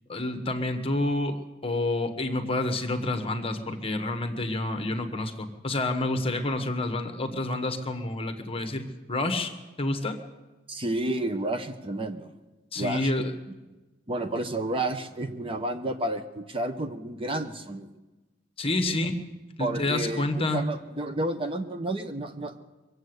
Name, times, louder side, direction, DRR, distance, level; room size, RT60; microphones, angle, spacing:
voice 1, 0.1-9.5 9.8-10.2 12.7-13.3 18.6-19.2 19.6-20.6, left 2 dB, 30° left, 7 dB, 1.4 m, -28 dB
voice 2, 10.7-12.3 12.8-13.1 14.1-17.9 18.9-19.0 19.6-22.5, right 1 dB, 30° right, 7 dB, 0.8 m, -31 dB
23.0 x 7.8 x 8.0 m, 1.1 s
head